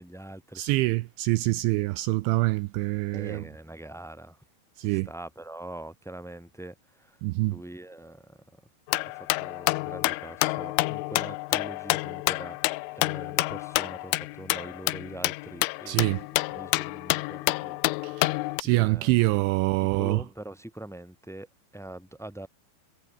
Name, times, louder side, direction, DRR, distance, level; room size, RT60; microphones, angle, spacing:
voice 1, 0.0-0.6 3.1-4.4 4.8-7.2 7.5-8.6 9.1-12.6 12.9-16.0 16.5-18.3 18.6-19.4 19.8-22.5, right 1 dB, ahead, 4.3 m, -43 dB
voice 2, 0.6-3.4 4.8-5.1 7.2-7.5 15.9-16.2 18.0-20.2, right 20 dB, 80° right, 2.9 m, -25 dB
sound 1, 8.9-18.6, left 22 dB, 85° left, 3.2 m, -28 dB
omnidirectional pair, 5.6 m